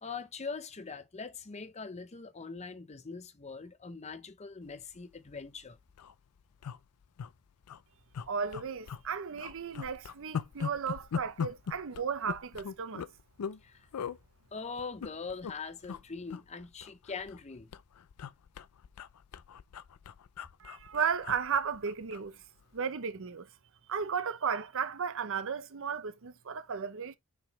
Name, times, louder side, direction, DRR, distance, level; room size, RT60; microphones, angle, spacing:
voice 1, 0.0-5.8 13.6-13.9 14.5-17.7, left 4 dB, 30° left, 0.7 m, -42 dB
sound 1, 5.2-5.3 5.6-5.7 5.9-6.1 6.6-7.3 7.6-7.8 8.1-9.1 9.4-13.6 13.9-14.2 14.8-15.5 15.8-16.0 16.3-17.4 17.7-22.3 22.6-22.8, left 7 dB, 85° left, 0.4 m, -40 dB
voice 2, 8.3-13.1 20.6-22.4 22.7-23.5 23.9-27.2, right 6 dB, 60° right, 0.7 m, -34 dB
6.2 x 4.9 x 3.1 m
head